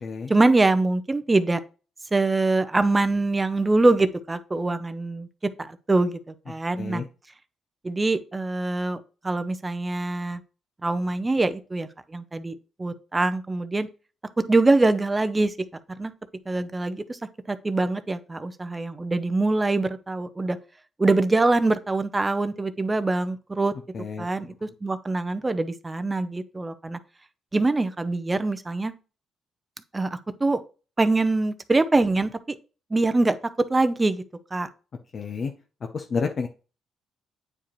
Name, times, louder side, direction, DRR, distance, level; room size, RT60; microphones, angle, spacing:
voice 1, 0.3-1.6 2.1-5.3 5.6-6.2 6.5-7.0 7.8-10.4 10.8-13.9 14.5-15.5 16.0-16.1 16.5-17.2 17.5-20.6 21.0-23.7 24.2-27.0 27.5-28.9 29.9-30.6 31.0-32.6 32.9-34.2 34.5-34.7, right 2 dB, 20° right, 11 dB, 0.7 m, -24 dB
voice 2, 23.9-24.3 24.6-24.7 35.1-35.5 35.9-36.5, left 5 dB, 50° left, 4 dB, 0.7 m, -30 dB
8.7 x 4.8 x 3.1 m, 0.34 s
cardioid pair, 90°, 0 cm